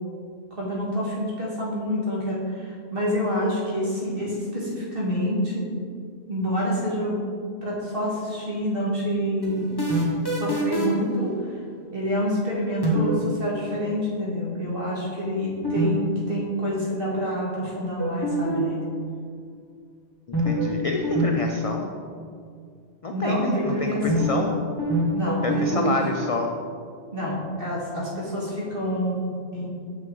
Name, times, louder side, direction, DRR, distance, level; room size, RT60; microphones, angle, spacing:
voice 1, 0.5-5.6 6.3-7.2 7.6-9.7 10.3-11.6 11.9-16.0 16.3-18.8 23.1-24.3 25.1-25.9 27.1-29.7, equal, 50° right, -5 dB, 1.9 m, -27 dB
sound 1, 9.4-11.1 12.8-13.2 15.6-15.9 16.1-16.2 18.0-18.8 20.3-20.7 21.0-21.3 21.5-21.6 24.1-24.5 24.8-25.9, right 1 dB, 20° left, 1.1 m, -24 dB
voice 2, 20.4-21.9 23.0-24.5 25.4-26.5, left 3 dB, 65° left, 2 dB, 0.3 m, -28 dB
6.3 x 6.1 x 3.8 m, 2.2 s
omnidirectional pair, 1.2 m